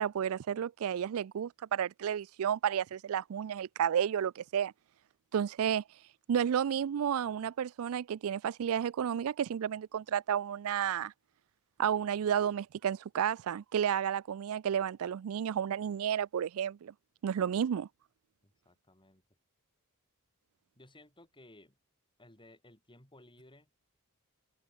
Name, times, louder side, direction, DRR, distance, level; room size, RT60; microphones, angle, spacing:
voice 1, 0.0-4.7 5.3-5.8 6.3-11.1 11.8-16.9 17.2-17.9, right 8 dB, 65° right, 0.3 m, -31 dB
voice 2, 18.4-19.2 20.8-21.8 22.2-23.7, left 1 dB, 20° left, 6.6 m, -58 dB
head